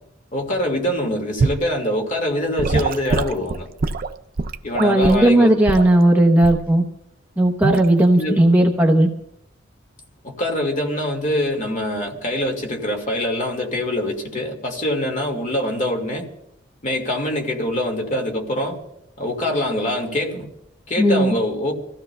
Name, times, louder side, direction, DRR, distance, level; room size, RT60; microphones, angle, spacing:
voice 1, 0.3-3.7 4.6-5.9 8.2-8.4 10.2-16.3 16.8-18.8 19.2-20.5 20.9-21.7, left 1 dB, 40° left, 2 dB, 1.9 m, -24 dB
Gurgling / Sink (filling or washing) / Liquid, 1.4-1.7 2.6-5.3 5.7-5.9 6.4-6.7 7.6-7.8, right 3 dB, 50° right, 0.5 m, -23 dB
voice 2, 4.8-6.8 7.4-9.1 21.0-21.3, right 1 dB, 10° right, 0 dB, 0.8 m, -15 dB
26.0 x 15.5 x 2.2 m, 0.80 s
head